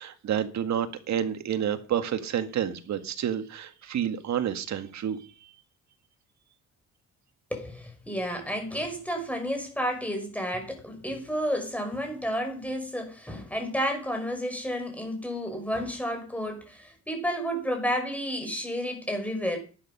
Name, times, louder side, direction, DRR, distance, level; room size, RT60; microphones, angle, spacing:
voice 1, 0.0-5.5, right 9 dB, 65° right, 1.8 m, -29 dB
voice 2, 7.5-19.6, equal, 5° left, 5.9 m, -31 dB
12.0 x 11.0 x 5.5 m
cardioid pair, 90°, 30 cm